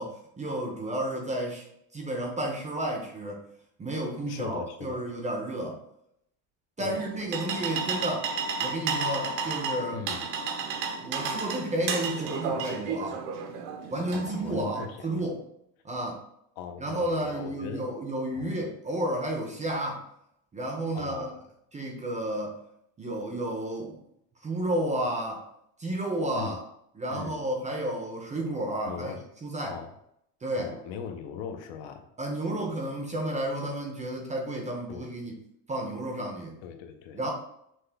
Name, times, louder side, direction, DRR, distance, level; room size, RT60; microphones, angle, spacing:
voice 1, 0.0-1.7 1.9-3.4 3.8-5.8 6.8-8.3 8.6-10.0 11.0-13.2 13.9-15.4 15.8-16.2 16.8-20.0 20.5-21.3 21.7-22.6 23.0-24.0 24.4-25.4 25.8-26.6 27.0-29.8 30.4-30.7 32.2-35.4 35.7-36.6 37.1-37.3, right 1 dB, 15° right, 1 dB, 0.6 m, -31 dB
voice 2, 4.3-5.0 6.8-7.1 9.9-10.3 14.0-15.3 16.6-17.9 18.4-18.6 20.9-21.4 26.3-26.6 27.1-27.5 28.9-29.2 29.6-29.9 30.5-32.1 34.9-35.1 36.6-37.2, left 7 dB, 65° left, 6 dB, 0.8 m, -40 dB
sound 1, 6.9-14.9, right 5 dB, 65° right, 0.8 m, -33 dB
5.9 x 2.3 x 3.4 m, 0.74 s
cardioid pair, 150°, 47 cm